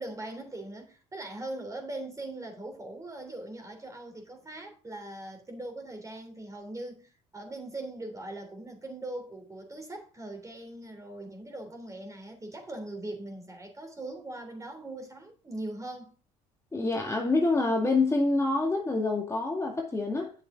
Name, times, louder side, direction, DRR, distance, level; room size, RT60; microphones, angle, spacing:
voice 1, 0.0-16.2, right 2 dB, 20° right, 3.3 m, -40 dB
voice 2, 16.7-20.3, left 3 dB, 20° left, 2.0 m, -26 dB
8.4 x 7.3 x 3.8 m
hypercardioid pair, 70°, 16 cm